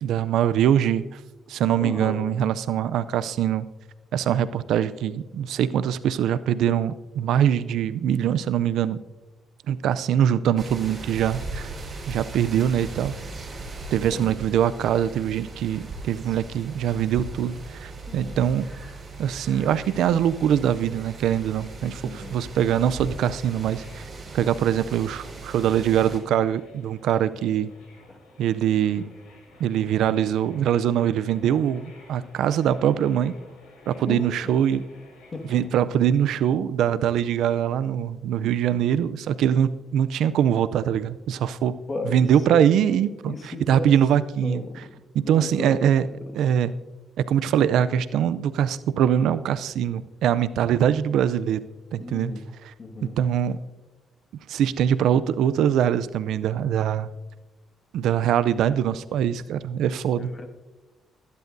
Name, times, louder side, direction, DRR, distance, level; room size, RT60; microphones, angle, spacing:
voice 1, 0.0-1.2 1.5-3.7 4.1-9.0 9.7-11.7 12.1-13.1 13.9-18.7 19.2-24.0 24.3-27.7 28.4-29.0 29.6-33.4 33.9-34.8 35.5-41.8 42.1-44.6 45.3-46.1 46.3-46.7 47.3-51.6 51.9-52.3 53.2-53.6 54.5-57.1 57.9-60.3, right 9 dB, 80° right, 15 dB, 0.4 m, -23 dB
voice 2, 1.8-2.2 14.1-14.4 18.1-18.4 22.0-22.4 28.1-28.2 34.0-34.6 35.3-35.5 41.9-42.7 43.3-43.9 44.4-44.9 45.2-46.5 52.0-52.4 52.8-53.2 60.1-60.5, left 3 dB, 35° left, 5 dB, 1.7 m, -35 dB
sound 1, 10.6-26.2, right 3 dB, 40° right, 4.1 m, -39 dB
sound 2, 19.1-35.7, left 2 dB, 80° left, 5.0 m, -53 dB
21.5 x 10.5 x 2.6 m, 1.1 s
cardioid pair, 90°, 0 cm